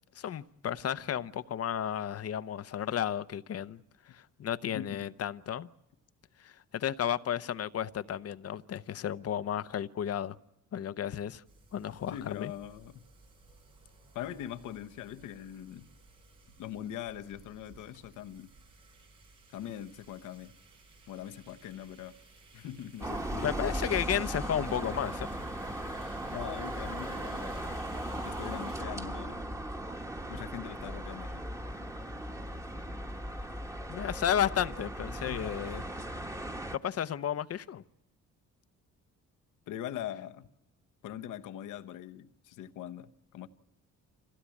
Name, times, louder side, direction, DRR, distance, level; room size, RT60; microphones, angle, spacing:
voice 1, 0.1-5.7 6.4-10.3 10.7-11.4 11.7-12.5 23.4-25.3 33.9-35.8 36.7-37.8, left 9 dB, 55° left, 0.8 m, -33 dB
voice 2, 4.6-5.0 12.1-13.0 14.1-15.9 16.6-18.5 19.5-20.5 21.1-22.1 22.5-23.5 26.3-27.8 28.2-29.5 30.3-31.5 35.1-35.8 39.7-40.4 41.0-43.5, left 11 dB, 85° left, 1.1 m, -42 dB
sound 1, 11.4-28.8, right 3 dB, 80° right, 4.8 m, -58 dB
sound 2, 23.0-36.8, right 1 dB, 10° right, 1.4 m, -37 dB
26.0 x 16.5 x 8.5 m
cardioid pair, 90°, 30 cm